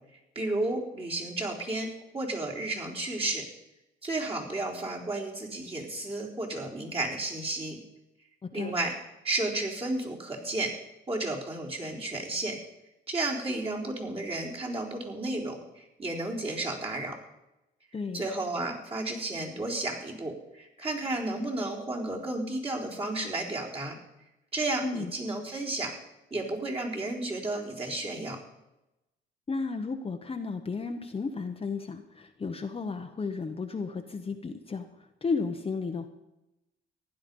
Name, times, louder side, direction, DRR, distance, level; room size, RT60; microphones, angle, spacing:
voice 1, 0.4-3.4 4.0-7.8 8.5-8.9 9.2-10.7 11.1-12.6 13.1-17.2 18.1-24.0 24.5-26.0 26.3-28.4, right 2 dB, 30° right, -2 dB, 3.9 m, -32 dB
voice 2, 8.4-8.7 17.9-18.2 24.8-25.1 29.5-34.9 35.2-36.1, left 4 dB, 30° left, 5 dB, 1.1 m, -33 dB
15.5 x 10.5 x 5.5 m, 0.93 s
cardioid pair, 90°, 20 cm